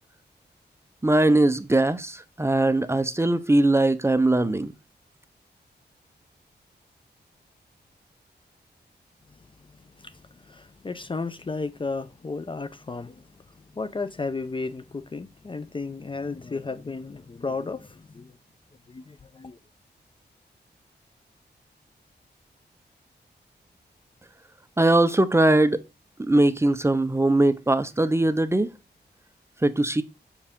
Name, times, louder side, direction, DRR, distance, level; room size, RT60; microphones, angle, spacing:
voice 1, 1.0-4.7 24.8-25.8 26.2-28.7 29.6-30.0, right 2 dB, 15° right, 0.6 m, -21 dB
voice 2, 10.5-13.2 13.8-18.3 18.9-19.6, left 4 dB, 30° left, 0.5 m, -33 dB
6.7 x 4.6 x 3.6 m
wide cardioid pair, 90°, 18 cm